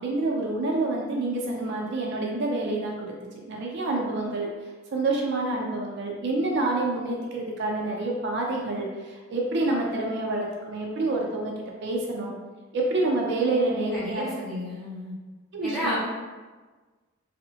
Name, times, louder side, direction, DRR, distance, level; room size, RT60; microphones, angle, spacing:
voice 1, 0.0-3.1 3.5-4.5 4.9-11.5 11.8-12.4 12.7-14.2 15.5-16.0, right 2 dB, 60° right, -1 dB, 0.4 m, -27 dB
voice 2, 13.9-15.1 15.6-16.0, left 1 dB, ahead, -10 dB, 0.7 m, -32 dB
2.7 x 2.0 x 2.7 m, 1.3 s
head